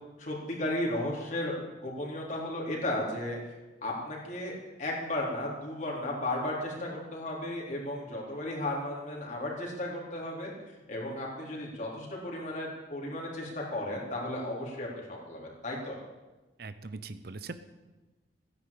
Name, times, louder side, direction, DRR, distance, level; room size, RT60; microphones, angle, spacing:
voice 1, 0.2-3.4 3.8-10.5 10.9-16.0, left 1 dB, 40° left, -3 dB, 4.1 m, -34 dB
voice 2, 16.6-17.5, right 3 dB, 55° right, 12 dB, 0.8 m, -41 dB
15.0 x 10.5 x 8.5 m, 1.1 s
head